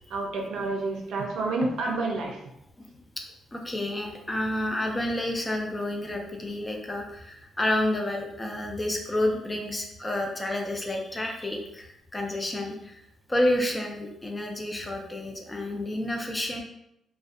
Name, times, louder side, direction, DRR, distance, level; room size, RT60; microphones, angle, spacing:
voice 1, 0.1-2.4, right 2 dB, 75° right, 1 dB, 0.5 m, -29 dB
voice 2, 3.5-13.0 13.3-16.6, left 1 dB, 15° left, 1 dB, 0.3 m, -29 dB
2.5 x 2.2 x 2.4 m, 0.81 s
cardioid pair, 135°, 0 cm